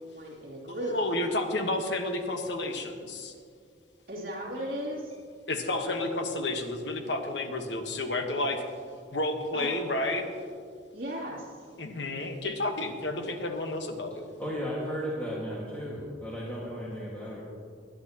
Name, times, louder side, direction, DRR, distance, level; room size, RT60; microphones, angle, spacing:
voice 1, 0.1-1.0 4.1-5.1 9.5-9.7 10.9-11.5, equal, 50° right, -8 dB, 2.8 m, -36 dB
voice 2, 0.8-3.3 5.5-8.7 9.1-10.3 11.8-14.3, left 2 dB, 65° left, 5 dB, 1.2 m, -31 dB
voice 3, 14.4-17.4, equal, 10° left, -7 dB, 1.7 m, -35 dB
20.5 x 10.5 x 2.9 m, 2.2 s
head